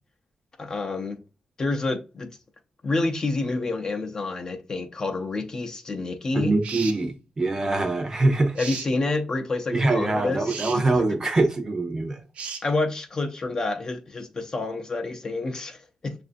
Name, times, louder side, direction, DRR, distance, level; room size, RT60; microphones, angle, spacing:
voice 1, 0.6-1.2 1.6-2.3 2.8-6.6 8.6-11.4 12.6-16.2, left 3 dB, 30° left, 0.5 m, -28 dB
voice 2, 6.4-8.6 9.7-12.2, right 2 dB, 25° right, 0.7 m, -23 dB
sound 1, 6.6-7.0 8.6-8.9 10.4-10.8 12.3-12.6, right 6 dB, 70° right, 0.6 m, -35 dB
6.4 x 2.5 x 2.5 m
wide cardioid pair, 140°, 2 cm